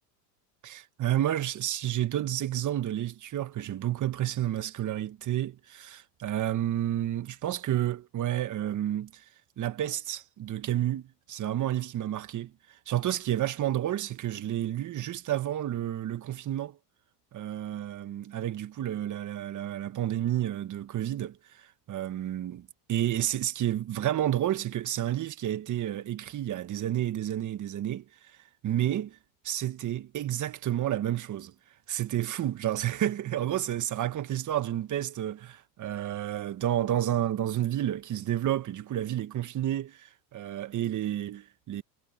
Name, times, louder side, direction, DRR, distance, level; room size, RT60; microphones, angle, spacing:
voice 1, 0.6-9.2 9.6-12.5 12.9-16.8 17.3-21.4 21.9-28.0 28.6-29.2 29.4-31.5 31.9-41.8, right 12 dB, 35° right, 1.7 m, -30 dB
supercardioid pair, 105°, 49 cm